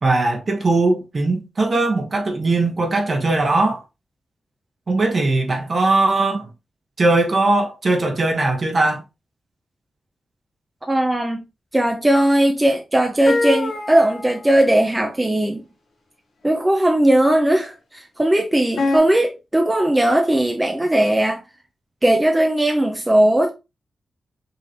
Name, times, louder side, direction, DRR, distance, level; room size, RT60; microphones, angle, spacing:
voice 1, 0.0-3.8 4.9-6.5 7.0-9.0, right 2 dB, 50° right, 1.5 m, -19 dB
voice 2, 10.9-11.4 11.7-15.6 16.4-21.4 22.0-23.5, right 1 dB, 15° right, 0.8 m, -18 dB
sound 1, 13.3-14.5 16.4-16.5 18.8-19.0, left 2 dB, 80° left, 1.7 m, -23 dB
5.4 x 3.1 x 3.0 m
cardioid pair, 60°, 0 cm